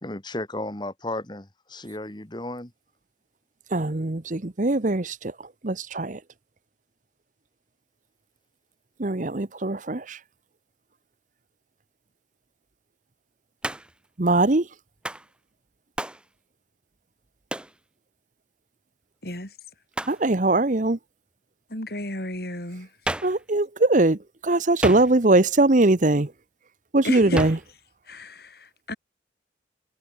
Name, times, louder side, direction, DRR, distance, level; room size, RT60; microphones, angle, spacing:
voice 1, 0.0-2.7, left 1 dB, 25° left, 2.3 m, -34 dB
voice 2, 3.7-5.3 5.6-6.2 9.0-10.2 14.2-14.7 20.1-21.0 23.2-26.3 26.9-27.6, right 2 dB, 45° right, 1.0 m, -21 dB
Hands, 13.6-14.1 15.0-15.3 16.0-16.3 17.5-17.8 19.9-20.2 23.1-23.4 24.8-25.4 27.4-27.7, right 1 dB, 5° right, 0.7 m, -31 dB
voice 3, 19.2-19.5 21.7-22.9 27.0-27.4 28.1-29.0, left 1 dB, 60° left, 8.0 m, -33 dB
head